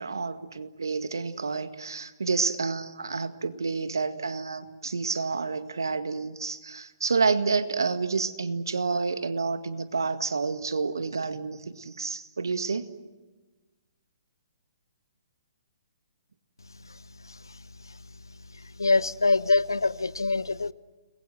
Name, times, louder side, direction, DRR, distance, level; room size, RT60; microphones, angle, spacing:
voice 1, 0.0-12.9, right 4 dB, 75° right, 1.9 m, -29 dB
voice 2, 18.8-20.7, left 3 dB, 80° left, 0.9 m, -24 dB
29.5 x 21.5 x 7.8 m
figure-of-eight pair, 125°, 2 cm